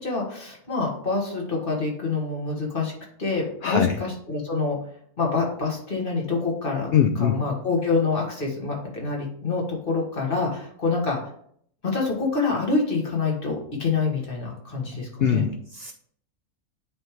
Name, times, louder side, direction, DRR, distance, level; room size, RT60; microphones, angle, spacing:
voice 1, 0.0-2.9 3.2-4.8 5.2-6.9 7.1-11.2 11.8-15.4, left 4 dB, 35° left, -2 dB, 1.7 m, -26 dB
voice 2, 3.6-4.0 6.9-7.4 15.2-15.9, left 8 dB, 80° left, 6 dB, 0.5 m, -22 dB
9.2 x 3.5 x 3.1 m, 0.63 s
omnidirectional pair, 1.6 m